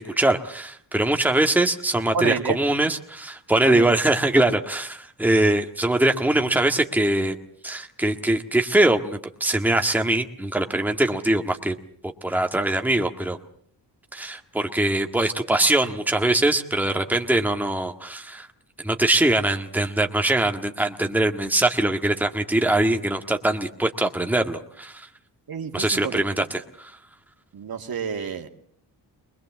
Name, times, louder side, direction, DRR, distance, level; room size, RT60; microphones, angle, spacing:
voice 1, 0.0-7.4 7.6-11.7 12.2-13.4 14.1-18.5 18.8-25.1 25.7-26.9, right 1 dB, 5° right, 4 dB, 1.8 m, -22 dB
voice 2, 2.1-2.6 3.6-4.0 25.5-26.2 27.5-28.5, right 6 dB, 55° right, 4 dB, 2.3 m, -29 dB
22.0 x 21.0 x 7.5 m, 0.62 s
cardioid pair, 70°, 42 cm